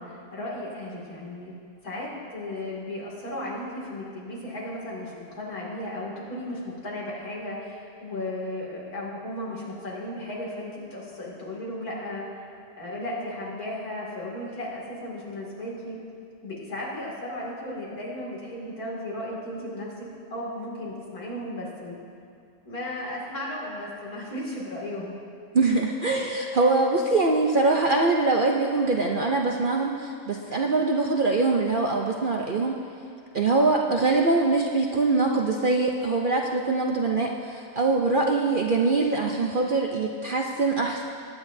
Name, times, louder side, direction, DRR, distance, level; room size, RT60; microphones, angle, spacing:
voice 1, 0.0-1.5 1.8-12.2 12.8-16.0 16.4-22.0 22.6-25.1, left 1 dB, 80° left, -5 dB, 2.9 m, -35 dB
voice 2, 25.5-32.8 33.3-41.0, right 3 dB, 55° right, 0 dB, 0.6 m, -23 dB
20.0 x 9.8 x 2.7 m, 2.4 s
omnidirectional pair, 1.5 m